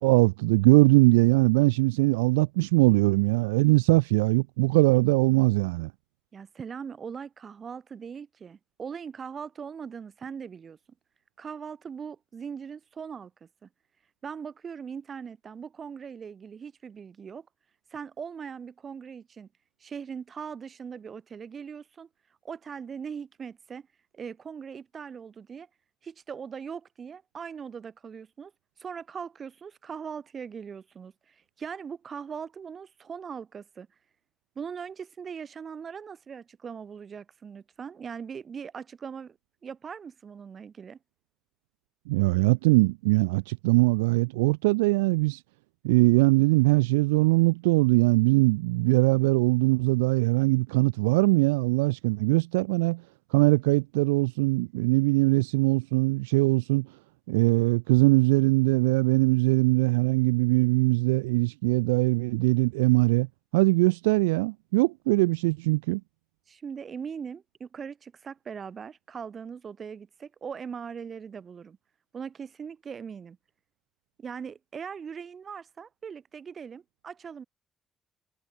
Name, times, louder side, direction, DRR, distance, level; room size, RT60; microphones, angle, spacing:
voice 1, 0.0-5.9 42.1-45.4 45.8-53.0 53.3-56.9 57.3-63.3 63.5-66.0, right 23 dB, 85° right, 0.6 m, -22 dB
voice 2, 6.3-10.8 11.4-13.7 14.2-17.5 17.9-19.5 19.8-22.1 22.4-23.9 24.1-25.7 26.0-28.5 28.8-33.9 34.6-39.4 39.6-41.0 66.5-71.8 72.1-73.4 74.2-77.4, right 6 dB, 50° right, 3.7 m, -40 dB
hypercardioid pair, 40°, 0 cm